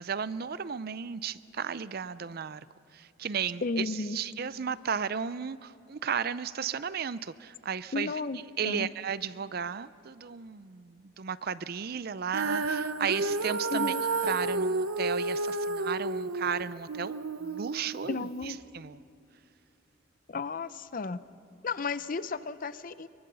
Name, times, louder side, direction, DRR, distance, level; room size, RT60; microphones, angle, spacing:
voice 1, 0.0-2.7 2.9-8.1 8.6-13.9 14.2-19.0, right 7 dB, 45° right, 16 dB, 0.5 m, -34 dB
voice 2, 3.6-4.2 7.9-8.9 13.7-14.0 18.1-18.6 20.3-21.2 21.6-23.1, left 4 dB, 40° left, 14 dB, 0.6 m, -33 dB
Female singing, 12.3-18.5, right 3 dB, 80° right, 0.9 m, -31 dB
23.5 x 23.0 x 6.9 m, 2.6 s
head